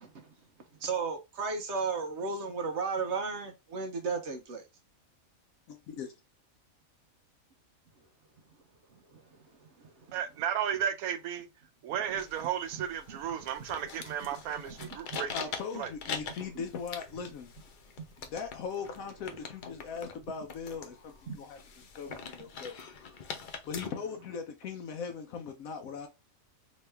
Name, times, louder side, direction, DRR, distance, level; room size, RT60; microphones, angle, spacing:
voice 1, 0.8-4.6 9.1-9.2 14.8-14.9 16.5-16.6 18.0-18.1 21.3-21.4, right 4 dB, 60° right, 0.9 m, -34 dB
voice 2, 5.7-6.1 15.3-17.5 18.2-22.7 23.7-26.1, left 6 dB, 80° left, 1.0 m, -40 dB
voice 3, 10.1-11.5 11.8-15.3 15.7-15.9, right 9 dB, 85° right, 1.1 m, -34 dB
sound 1, 12.1-23.9, left 5 dB, 55° left, 0.5 m, -43 dB
3.0 x 2.8 x 3.3 m
omnidirectional pair, 1.5 m